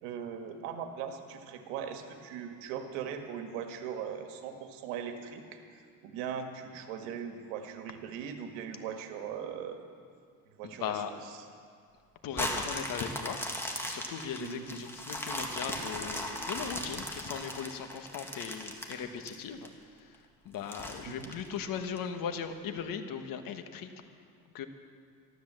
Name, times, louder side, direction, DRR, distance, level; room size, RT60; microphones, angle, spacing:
voice 1, 0.0-5.6 6.0-9.8 10.6-11.4 14.4-14.7 21.1-21.3, right 7 dB, 90° right, 5 dB, 1.6 m, -39 dB
voice 2, 10.6-11.1 12.2-13.4 13.8-19.7 20.4-23.9 24.5-24.7, left 7 dB, 55° left, 7 dB, 1.3 m, -38 dB
sound 1, 12.3-19.7 20.1-20.2 20.7-22.0 22.5-22.6, left 1 dB, 5° left, 1.8 m, -37 dB
13.0 x 13.0 x 7.5 m, 2.2 s
cardioid pair, 115°, 40 cm